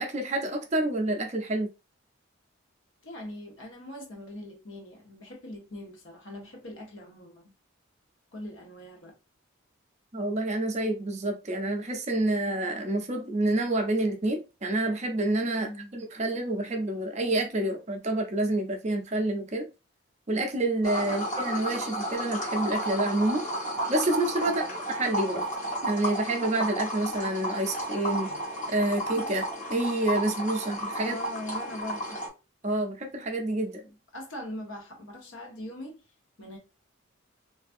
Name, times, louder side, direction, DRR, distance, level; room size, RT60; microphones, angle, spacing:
voice 1, 0.0-1.7 10.1-19.7 20.3-23.5 23.9-24.6 24.9-25.5 25.8-28.3 28.7-29.4 29.7-31.2 32.6-33.8, right 2 dB, 35° right, 0.5 m, -28 dB
voice 2, 3.0-7.5 8.3-9.2 15.6-15.9 24.5-24.8 31.0-32.2 33.8-36.0 36.4-36.6, left 1 dB, 65° left, 1.0 m, -41 dB
sound 1, 20.8-32.3, right 1 dB, 35° left, 1.1 m, -32 dB
3.3 x 2.4 x 2.5 m
head